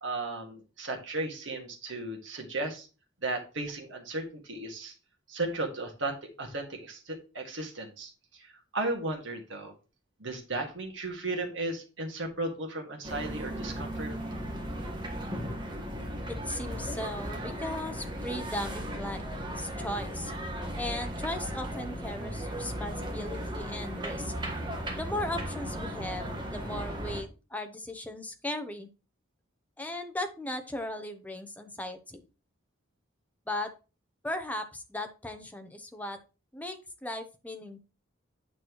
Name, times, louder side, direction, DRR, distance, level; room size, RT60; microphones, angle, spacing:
voice 1, 0.0-2.9 3.2-4.9 5.3-9.7 10.2-14.1, right 2 dB, 70° right, 2 dB, 2.0 m, -35 dB
sound 1, 13.0-27.2, equal, 25° right, 1.5 m, -36 dB
voice 2, 16.3-19.2 19.5-20.3 20.7-24.3 24.9-28.9 29.8-32.2 33.5-33.7 34.2-36.2 36.5-37.8, left 1 dB, 10° left, 6 dB, 0.8 m, -37 dB
9.0 x 6.0 x 3.1 m, 0.33 s
head